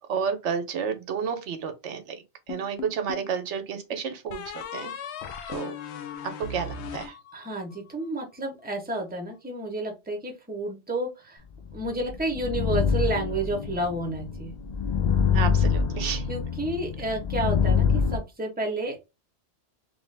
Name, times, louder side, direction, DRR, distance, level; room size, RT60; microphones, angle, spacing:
voice 1, 0.1-2.2 2.5-4.4 4.7-4.9 5.5-5.7 6.4-7.2 15.3-16.2, right 6 dB, 80° right, 0.9 m, -31 dB
sound 1, 2.5-3.3 4.3-7.8, left 6 dB, 75° left, 0.8 m, -38 dB
voice 2, 7.3-11.4 11.7-14.5 16.3-17.8 18.1-19.0, right 1 dB, 10° right, 0.8 m, -30 dB
sound 2, 11.7-18.2, left 6 dB, 55° left, 0.5 m, -25 dB
3.2 x 2.6 x 3.2 m
omnidirectional pair, 1.2 m